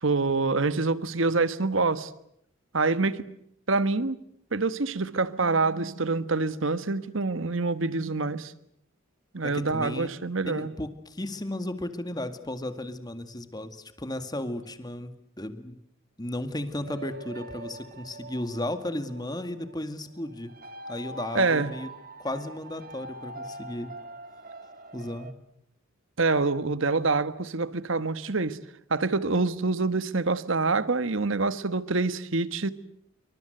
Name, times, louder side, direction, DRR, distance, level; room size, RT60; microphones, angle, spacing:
voice 1, 0.0-2.1 2.7-3.2 3.7-4.2 4.5-8.5 9.3-10.7 21.3-21.7 26.2-28.6 28.9-32.7, right 3 dB, 70° right, 13 dB, 1.4 m, -26 dB
voice 2, 9.4-10.1 10.5-15.8 16.2-20.5 20.9-21.9 22.2-23.9 24.9-25.4, left 1 dB, 20° left, 9 dB, 2.0 m, -34 dB
sound 1, 16.8-25.3, right 2 dB, 45° right, 2.1 m, -43 dB
27.5 x 24.5 x 8.0 m, 0.74 s
head